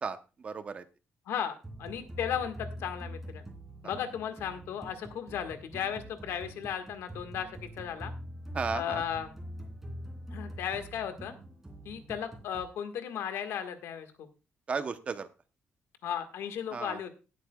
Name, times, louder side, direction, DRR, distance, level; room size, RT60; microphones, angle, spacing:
voice 1, 0.0-0.8 8.5-9.0 14.7-15.3 16.7-17.0, right 5 dB, 30° right, 11 dB, 0.8 m, -34 dB
voice 2, 1.3-3.4 3.8-8.1 8.7-9.3 10.3-11.3 11.8-14.3 16.0-17.1, left 8 dB, 90° left, 8 dB, 1.5 m, -35 dB
sound 1, 1.6-12.6, equal, 10° right, 2.6 m, -44 dB
18.5 x 8.3 x 2.3 m, 0.31 s
cardioid pair, 165°, 4 cm